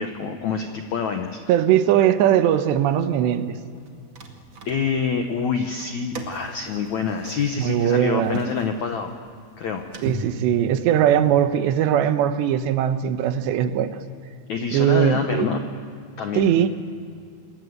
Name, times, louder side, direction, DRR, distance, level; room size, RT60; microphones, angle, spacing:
voice 1, 0.0-1.6 4.6-9.1 9.6-9.9 14.5-15.6 16.2-16.5, left 6 dB, 75° left, 5 dB, 1.7 m, -26 dB
voice 2, 1.5-3.6 7.6-8.4 10.0-14.0 14.7-15.5 16.4-16.7, right 10 dB, 85° right, 10 dB, 3.2 m, -20 dB
sound 1, 3.8-5.2 5.7-11.0, right 3 dB, 40° right, 2.0 m, -39 dB
27.5 x 22.0 x 8.0 m, 2.3 s
omnidirectional pair, 5.0 m